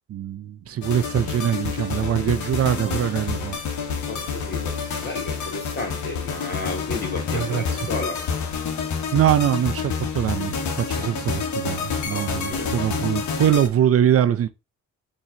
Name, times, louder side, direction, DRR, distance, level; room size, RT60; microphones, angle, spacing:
voice 1, 0.1-3.6 4.2-4.3 7.3-7.6 9.1-14.5, right 10 dB, 50° right, 0.5 m, -23 dB
sound 1, 0.8-13.7, left 6 dB, 70° left, 1.2 m, -28 dB
voice 2, 4.1-8.2 8.5-8.6 11.0-11.1 12.1-12.7, left 2 dB, 35° left, 2.6 m, -33 dB
4.2 x 3.1 x 3.7 m
cardioid pair, 90°, 30 cm